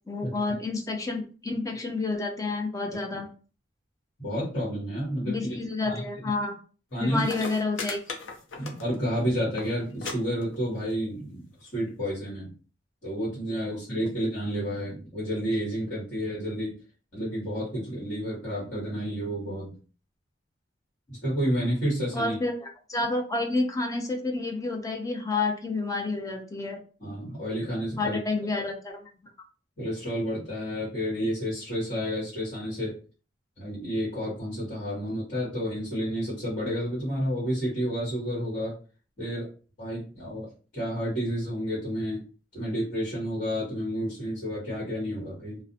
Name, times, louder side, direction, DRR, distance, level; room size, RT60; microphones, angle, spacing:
voice 1, 0.1-3.3 5.2-6.6 7.0-8.0 22.1-26.8 28.0-29.0, left 3 dB, 20° left, 3 dB, 0.4 m, -29 dB
voice 2, 4.2-5.6 5.8-6.0 6.9-7.3 8.6-12.5 13.0-16.7 17.1-19.7 21.1-22.4 27.0-28.2 28.6-28.7 29.8-32.9 33.6-38.7 39.2-39.5 39.8-40.5 40.7-42.2 42.5-45.6, equal, 45° left, -7 dB, 1.3 m, -30 dB
sound 1, 6.9-7.0 7.2-9.1 9.4-9.7 10.0-10.1 10.4-10.9 11.7-11.8, left 4 dB, 75° left, 0.5 m, -36 dB
2.5 x 2.0 x 2.7 m, 0.37 s
head